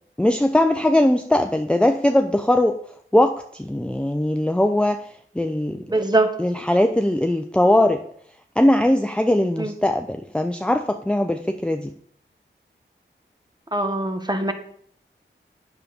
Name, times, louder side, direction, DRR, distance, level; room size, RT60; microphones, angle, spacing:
voice 1, 0.2-2.8 3.1-5.0 5.3-5.8 6.4-8.0 8.6-11.9, left 1 dB, 5° left, 6 dB, 0.6 m, -20 dB
voice 2, 5.9-6.3 9.6-9.7 13.7-14.5, right 2 dB, 20° right, 6 dB, 1.5 m, -22 dB
8.4 x 7.0 x 5.4 m, 0.64 s
cardioid pair, 45°, 20 cm